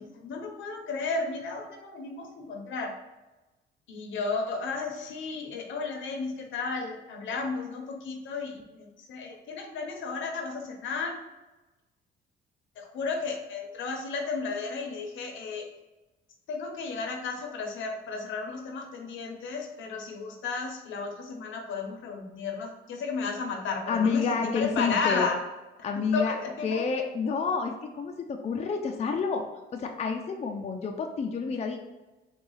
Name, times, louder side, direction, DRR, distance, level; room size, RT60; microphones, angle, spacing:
voice 1, 0.0-2.9 3.9-11.2 12.8-15.7 16.5-25.4 26.1-26.8, left 4 dB, 75° left, 3 dB, 0.8 m, -33 dB
voice 2, 23.9-25.3 25.8-26.3 26.6-29.5 29.7-31.8, left 5 dB, 35° left, 2 dB, 0.5 m, -29 dB
4.0 x 2.4 x 3.9 m, 1.1 s
cardioid pair, 90°, 20 cm